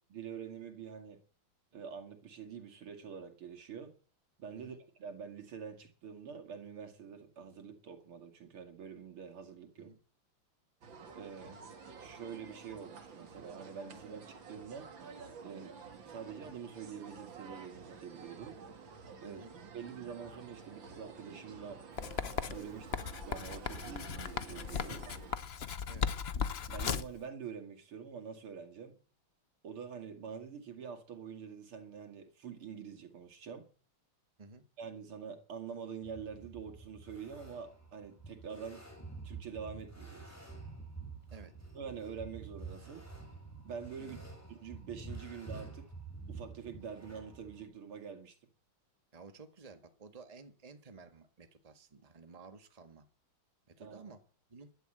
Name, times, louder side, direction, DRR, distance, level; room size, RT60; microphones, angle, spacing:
voice 1, 0.1-1.2 1.7-3.9 4.4-9.9 11.2-11.6 12.0-14.9 15.4-15.8 16.1-18.6 19.2-19.4 19.7-21.8 22.4-23.0 23.2-25.1 26.7-28.9 29.6-33.7 34.8-38.8 39.2-40.3 41.7-43.0 43.6-44.2 44.5-45.9 46.3-48.4 53.8-54.0, right 6 dB, 90° right, 3.2 m, -46 dB
sound 1, 10.8-25.4, right 5 dB, 65° right, 2.7 m, -51 dB
voice 2, 19.3-19.6 25.9-26.1 34.4-34.6 41.3-41.6 44.0-44.2 49.1-53.1 53.8-54.7, right 4 dB, 20° right, 1.5 m, -54 dB
Writing, 22.0-27.2, left 7 dB, 65° left, 0.6 m, -37 dB
sound 2, 36.0-47.7, right 4 dB, 5° left, 5.3 m, -48 dB
12.5 x 11.5 x 7.9 m
omnidirectional pair, 2.3 m